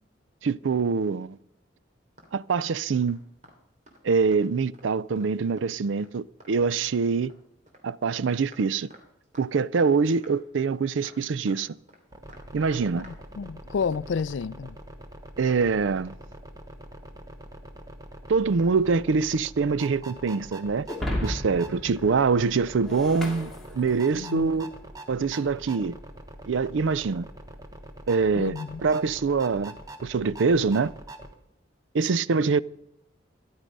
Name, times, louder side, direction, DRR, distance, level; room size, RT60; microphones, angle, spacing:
voice 1, 0.4-1.4 2.3-3.2 4.0-7.3 7.8-8.9 9.4-11.8 12.5-13.1 15.4-16.2 18.3-20.9 21.2-24.7 25.1-26.0 26.4-27.3 28.1-29.8 30.0-30.9 31.9-32.6, right 5 dB, 80° right, 0.5 m, -24 dB
sound 1, 2.2-2.3 2.6-2.7 3.0-3.1 3.4-3.6 3.9-4.0 4.3-4.9 5.1-5.3 5.6-5.7 6.0-6.1 6.4-6.5 6.8-7.8 8.1-8.2 8.5-8.6 8.9-9.5 9.8-9.9 10.2-10.3 10.6-10.7 11.0-11.6 11.9-12.0 12.3-13.2 13.4-13.5, right 1 dB, 40° right, 2.9 m, -51 dB
sound 2, 12.1-31.3, right 1 dB, 20° right, 1.2 m, -44 dB
voice 2, 13.1-14.8 24.1-24.5 28.4-28.8, left 5 dB, 75° left, 0.4 m, -30 dB
Shatter, 20.9-24.4, left 1 dB, ahead, 2.5 m, -34 dB
13.5 x 11.5 x 5.3 m
head